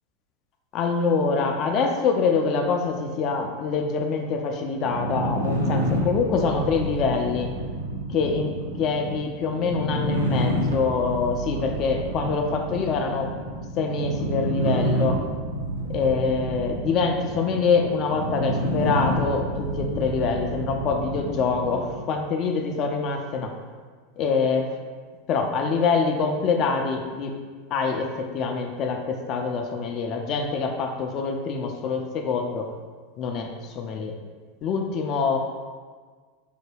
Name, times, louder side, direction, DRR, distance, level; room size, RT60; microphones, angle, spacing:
voice 1, 0.7-7.5 8.1-13.3 13.8-15.2 15.9-23.5 24.2-24.8 25.3-27.4 27.7-32.7 33.2-34.1 34.6-35.4, left 5 dB, 45° left, 3 dB, 0.4 m, -25 dB
sound 1, 4.7-22.0, equal, 90° right, 0.5 m, -28 dB
4.6 x 2.1 x 3.3 m, 1.5 s
hypercardioid pair, 90°, 0 cm